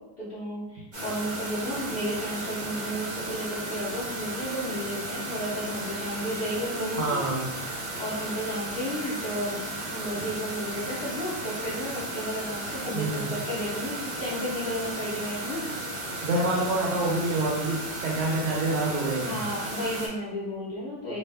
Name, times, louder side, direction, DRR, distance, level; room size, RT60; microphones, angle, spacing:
voice 1, 0.2-7.2 8.0-9.6 9.8-15.6 19.2-21.2, equal, 70° left, -10 dB, 0.5 m, -33 dB
sound 1, 0.9-20.1, right 2 dB, 65° right, 0.4 m, -35 dB
voice 2, 7.0-7.5 12.9-13.2 16.2-19.3, right 2 dB, 85° right, -1 dB, 1.4 m, -27 dB
3.4 x 2.1 x 3.3 m, 1.0 s
omnidirectional pair, 2.2 m